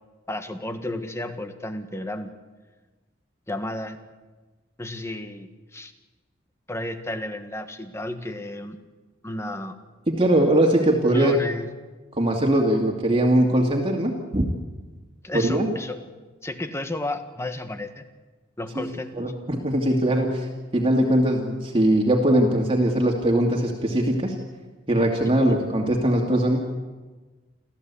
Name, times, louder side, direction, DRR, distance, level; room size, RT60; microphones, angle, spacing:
voice 1, 0.3-2.3 3.5-4.0 4.8-5.9 6.7-8.8 9.2-9.7 11.1-11.7 15.2-16.0 16.4-18.0 18.6-19.3 25.2-25.6, left 1 dB, 15° left, 8 dB, 1.5 m, -32 dB
voice 2, 10.1-11.3 12.1-14.5 15.3-15.7 18.8-18.9 19.2-20.5 20.7-24.4 24.9-26.6, right 1 dB, 30° right, 0 dB, 2.4 m, -21 dB
28.5 x 14.5 x 8.4 m, 1.3 s
head